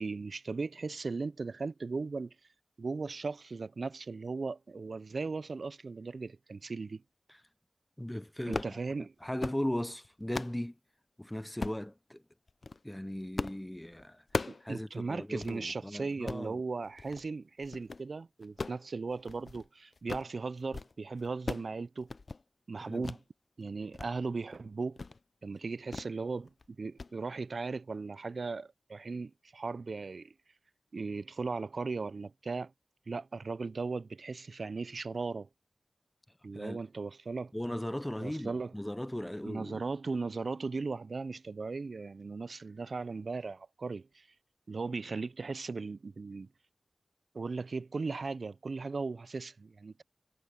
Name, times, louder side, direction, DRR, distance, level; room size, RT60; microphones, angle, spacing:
voice 1, 0.0-2.3 2.8-7.0 8.5-9.1 14.5-22.1 22.7-23.2 23.6-25.0 25.4-30.3 30.9-32.7 33.1-35.5 36.4-37.5 38.2-38.7 39.4-44.3 44.7-46.5 47.3-50.0, right 4 dB, 75° right, 0.4 m, -37 dB
voice 2, 8.0-8.8 9.2-10.8 11.2-12.2 12.8-14.2 14.6-16.6 22.8-23.1 36.5-36.8 37.5-39.8, left 1 dB, 10° left, 0.6 m, -37 dB
sound 1, 8.4-8.8 9.2-9.6 10.0-10.6 11.6-11.9 12.5-12.8 13.4-13.6 13.9-14.7 15.0-15.1 15.4-15.6 16.1-16.5 17.0-17.3 17.6-18.0 18.4-19.7 19.9-20.3 20.6-20.9 21.2-21.7 22.0-22.4 23.0-23.2 23.6-24.1 24.4-24.6 25.0-25.2 25.9-26.2 26.5-26.7 27.0-27.1, left 3 dB, 60° left, 0.5 m, -38 dB
wide cardioid pair, 80°, 0 cm